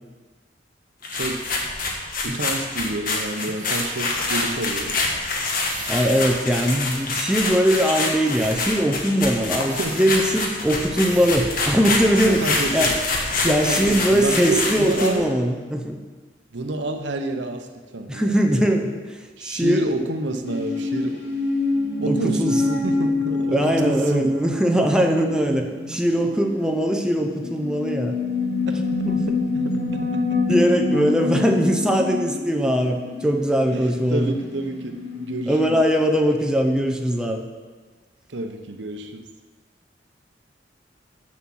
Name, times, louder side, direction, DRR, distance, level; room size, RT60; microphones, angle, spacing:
sound 1, 1.0-15.2, left 3 dB, 50° left, 1.3 m, -26 dB
voice 1, 1.1-1.5 2.2-5.0 9.6-10.0 12.3-12.9 13.4-15.3 16.5-17.7 17.9-18.7 19.4-21.2 22.0-24.3 28.7-28.8 29.5-30.2 33.7-35.8 38.3-39.3, right 2 dB, 75° right, 6 dB, 0.8 m, -29 dB
sound 2, 1.4-1.5 2.5-3.0 3.5-4.1 5.0-5.1 5.6-6.4 6.7-6.8 8.3-8.7 9.6-10.2 10.9-11.4 12.0-12.1 12.3-12.7 13.6-13.7, right 4 dB, 40° right, 1.6 m, -40 dB
voice 2, 5.9-12.4 12.7-12.9 13.4-16.0 18.1-19.9 22.1-22.8 23.5-28.2 29.0-29.4 30.5-34.4 35.5-37.4, equal, 5° right, 3 dB, 0.6 m, -21 dB
sound 3, 20.4-35.8, left 3 dB, 85° left, 2.8 m, -27 dB
7.3 x 7.2 x 6.2 m, 1.4 s
head